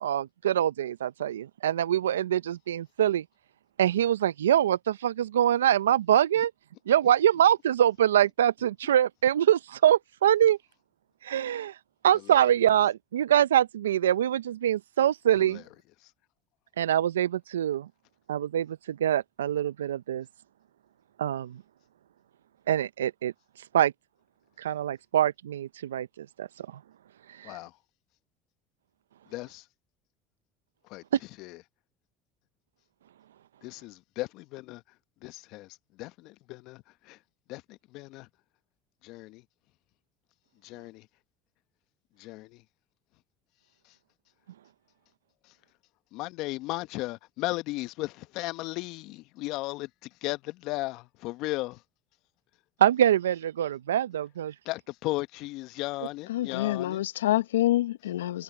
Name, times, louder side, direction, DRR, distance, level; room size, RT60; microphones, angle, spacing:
voice 1, 0.0-3.2 3.8-6.5 6.9-10.6 11.2-11.8 12.0-15.6 16.8-17.9 18.3-20.3 21.2-21.6 22.7-23.3 23.7-23.9 24.6-26.8 27.3-27.6 52.8-54.5, right 11 dB, 85° right, 0.7 m, -24 dB
voice 2, 29.3-29.6 30.9-31.0 31.4-31.5 33.6-34.8 35.2-35.7 36.0-36.8 37.1-37.2 37.5-37.6 37.9-38.3 39.0-39.4 40.6-41.0 42.2-42.5 46.1-49.9 50.2-51.8 54.7-57.0, left 20 dB, 65° left, 1.2 m, -35 dB
voice 3, 56.3-58.4, left 14 dB, 85° left, 0.8 m, -27 dB
hypercardioid pair, 70°, 0 cm